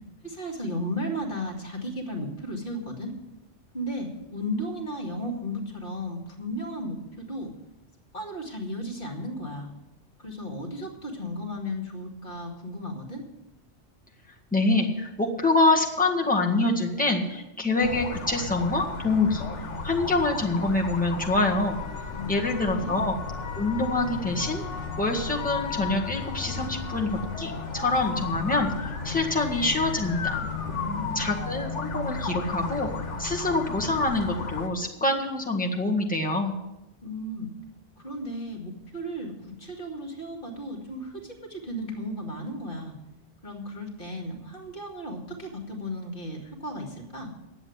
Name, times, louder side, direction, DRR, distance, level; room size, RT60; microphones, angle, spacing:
voice 1, 0.2-3.1 3.7-7.5 8.1-9.7 10.2-13.2 22.1-23.0 30.6-31.3 37.0-37.5 38.0-39.3 39.6-43.0 43.4-47.3, equal, 45° left, 2 dB, 2.4 m, -35 dB
voice 2, 14.5-19.5 19.8-21.8 22.3-23.2 23.6-30.4 31.2-32.9 33.2-36.5, left 2 dB, 5° left, -1 dB, 1.7 m, -25 dB
sound 1, 17.8-34.7, left 4 dB, 80° left, 1.6 m, -34 dB
10.5 x 8.1 x 9.4 m, 0.96 s
omnidirectional pair, 1.2 m